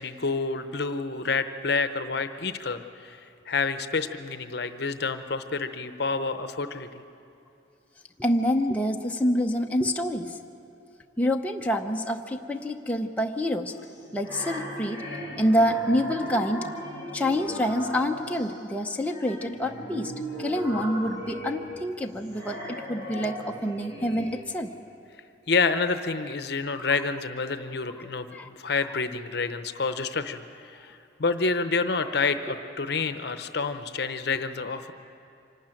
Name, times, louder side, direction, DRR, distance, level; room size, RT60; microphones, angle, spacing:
voice 1, 0.0-6.9 25.5-34.9, left 4 dB, 55° left, 9 dB, 0.8 m, -28 dB
voice 2, 8.2-10.3 11.2-13.7 14.1-15.0 15.4-16.6 17.1-20.1 20.4-24.7 26.7-26.8 28.3-28.5, equal, 10° left, 1 dB, 0.7 m, -27 dB
sound 1, 13.8-18.6 19.0-24.3, equal, 20° right, 3.8 m, -37 dB
25.5 x 12.5 x 9.0 m, 2.6 s
head